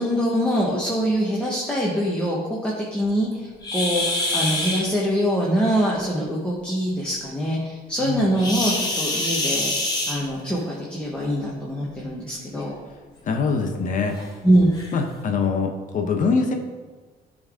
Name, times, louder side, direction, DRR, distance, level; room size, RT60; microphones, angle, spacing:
voice 1, 0.0-12.8 14.4-14.8, equal, 5° left, -5 dB, 1.3 m, -24 dB
sound 1, 3.6-4.8 8.4-10.6 11.8-12.0 12.6-12.7 13.3-13.4 14.2-14.3 14.7-14.9, left 2 dB, 25° left, 1.8 m, -25 dB
voice 2, 13.2-14.2 14.9-16.5, left 4 dB, 50° left, 4 dB, 0.9 m, -23 dB
10.5 x 4.0 x 3.7 m, 1.4 s
cardioid pair, 110°, 17 cm